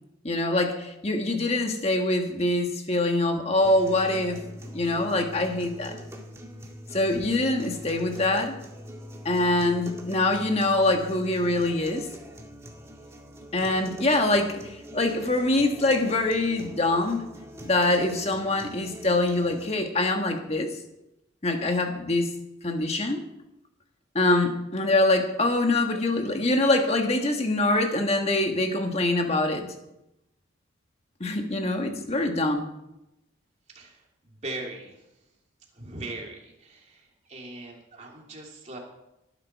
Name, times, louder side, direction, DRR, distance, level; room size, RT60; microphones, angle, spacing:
voice 1, 0.2-4.4 4.7-6.0 6.9-8.6 9.2-12.1 13.5-17.3 17.6-20.7 21.4-22.3 22.6-23.2 24.1-29.7 31.2-32.6, left 2 dB, 30° left, 4 dB, 1.6 m, -24 dB
sound 1, 3.6-19.7, equal, 15° right, 1.8 m, -43 dB
voice 2, 34.2-34.9 35.7-38.8, right 2 dB, 35° right, -1 dB, 3.0 m, -39 dB
19.0 x 10.5 x 4.7 m, 0.90 s
head